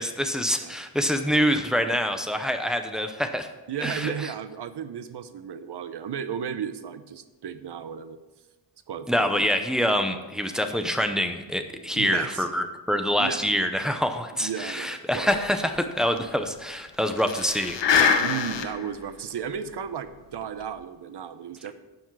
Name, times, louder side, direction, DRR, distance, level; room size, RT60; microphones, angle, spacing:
voice 1, 0.0-3.5 3.8-4.3 9.1-17.8, equal, ahead, 6 dB, 0.7 m, -26 dB
voice 2, 3.7-8.2 8.9-9.3 11.9-12.5 13.2-13.5 14.4-15.5 18.2-21.7, right 8 dB, 65° right, 11 dB, 0.8 m, -34 dB
sound 1, 15.3-15.4 15.7-15.8 16.2-16.3 17.2-18.9 19.4-19.5 20.4-20.6, left 6 dB, 75° left, 1.0 m, -24 dB
12.0 x 7.1 x 4.7 m, 1.2 s
wide cardioid pair, 160°, 43 cm